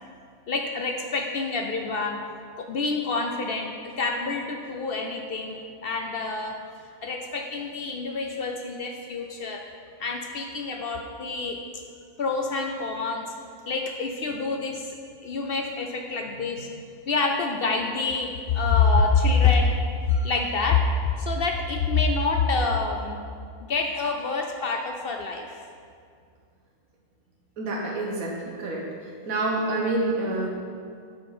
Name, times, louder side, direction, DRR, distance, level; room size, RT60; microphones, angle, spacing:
voice 1, 0.5-2.2 2.6-6.6 7.0-9.6 10.0-11.6 12.2-13.3 13.7-15.0 15.2-19.8 20.1-23.2 23.6-25.6, left 4 dB, 60° left, 3 dB, 0.6 m, -26 dB
voice 2, 27.6-28.8 29.3-30.5, right 2 dB, 75° right, -2 dB, 1.4 m, -27 dB
8.7 x 4.7 x 5.5 m, 2.2 s
omnidirectional pair, 1.5 m